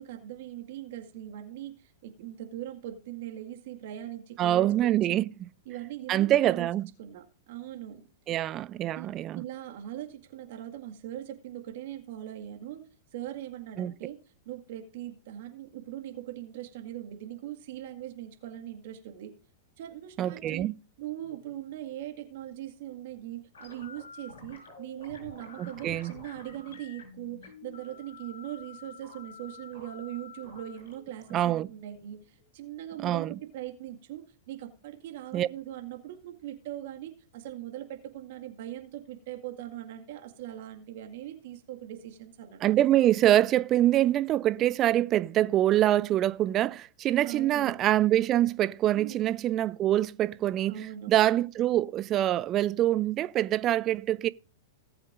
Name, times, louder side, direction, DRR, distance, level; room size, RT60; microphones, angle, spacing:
voice 1, 0.0-5.3 5.7-6.7 7.0-8.1 8.9-9.1 9.3-12.8 13.1-14.2 14.5-19.3 19.8-20.7 21.0-43.0 47.2-47.8 49.0-49.2 50.7-51.1, right 12 dB, 60° right, 2.0 m, -40 dB
voice 2, 4.4-5.5 6.1-6.8 8.3-9.4 13.8-13.9 20.2-20.7 25.6-26.1 31.3-31.7 33.0-33.3 35.3-35.5 42.6-54.3, right 13 dB, 35° right, 0.5 m, -25 dB
sound 1, 23.5-32.5, left 4 dB, 75° left, 6.5 m, -49 dB
18.5 x 8.0 x 2.6 m
hypercardioid pair, 100°, 0 cm